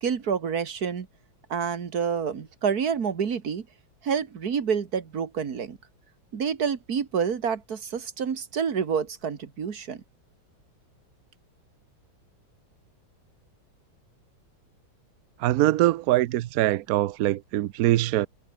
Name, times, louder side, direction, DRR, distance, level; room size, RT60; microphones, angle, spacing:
voice 1, 0.0-1.1 1.5-3.7 4.0-5.8 6.3-10.0, right 6 dB, 50° right, 2.1 m, -28 dB
voice 2, 15.4-18.3, right 15 dB, 85° right, 0.8 m, -23 dB
omnidirectional pair, 2.2 m